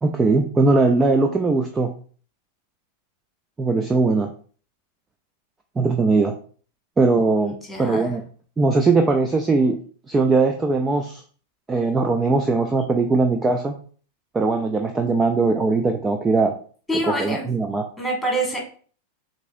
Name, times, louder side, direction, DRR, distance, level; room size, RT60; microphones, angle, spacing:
voice 1, 0.0-1.9 3.6-4.3 5.8-6.3 7.0-8.2 8.6-9.8 10.1-11.2 11.7-13.8 14.3-16.6 17.1-17.8, right 3 dB, 15° right, 4 dB, 0.4 m, -20 dB
voice 2, 7.4-8.1 16.9-17.5 18.0-18.6, right 1 dB, 5° left, -1 dB, 1.9 m, -26 dB
6.0 x 2.8 x 2.5 m, 0.43 s
figure-of-eight pair, 90°, 0 cm